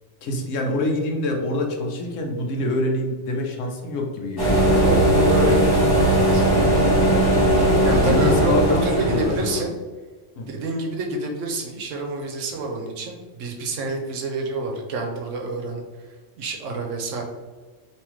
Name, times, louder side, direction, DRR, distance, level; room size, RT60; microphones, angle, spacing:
voice 1, 0.2-4.6 7.3-9.6 10.4-10.6, left 1 dB, 80° left, 2 dB, 1.0 m, -26 dB
sound 1, 4.4-9.6, right 1 dB, 20° left, 1.4 m, -18 dB
voice 2, 4.6-5.6 5.9-6.5 7.8-9.7 10.5-15.8 16.4-17.2, right 2 dB, 75° right, 2 dB, 1.1 m, -28 dB
3.5 x 2.9 x 3.1 m, 1.4 s
omnidirectional pair, 1.3 m